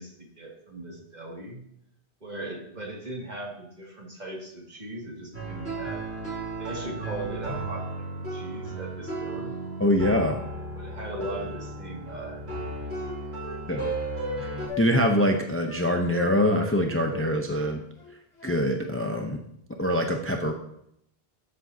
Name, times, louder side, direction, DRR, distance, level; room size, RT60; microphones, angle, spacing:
voice 1, 0.0-1.6 2.2-6.1 6.6-7.8 8.2-9.5 10.7-12.7 13.3-13.4, right 1 dB, 40° right, -2 dB, 2.4 m, -38 dB
sound 1, 5.3-14.7, right 2 dB, 85° right, 4.7 m, -34 dB
voice 2, 9.8-10.4 13.7-13.9 14.8-17.8 18.4-19.4 19.8-20.5, equal, 15° left, 3 dB, 0.7 m, -24 dB
Wind instrument woodwind instrument, 12.2-12.3 12.6-14.4 14.7-14.9 15.1-15.3 15.6-15.8 16.1-16.8 17.1-19.0, left 2 dB, 80° left, 2.0 m, -40 dB
14.0 x 7.7 x 2.8 m, 0.74 s
omnidirectional pair, 1.1 m